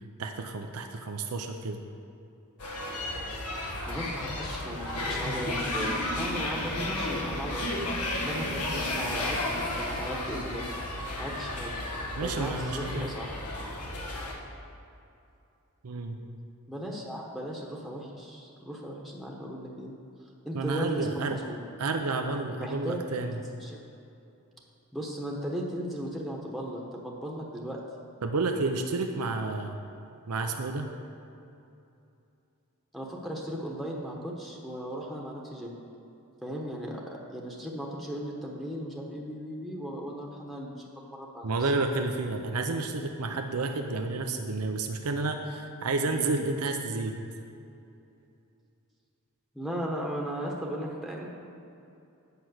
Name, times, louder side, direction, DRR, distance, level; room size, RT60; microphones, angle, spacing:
voice 1, 0.2-1.8 12.2-13.1 15.8-16.2 20.5-21.4 21.8-23.4 28.2-29.8 30.3-30.9 41.4-47.2, right 3 dB, 75° right, 4 dB, 0.7 m, -30 dB
sound 1, 2.6-14.3, left 1 dB, 85° left, 1.4 m, -33 dB
voice 2, 3.9-7.7 8.1-10.6 11.2-11.7 12.2-13.3 16.7-19.9 20.4-21.6 22.6-23.0 23.6-23.8 24.9-27.8 32.9-35.8 36.4-41.7 49.5-51.3, equal, ahead, -2 dB, 1.1 m, -36 dB
8.4 x 5.8 x 7.9 m, 2.7 s
head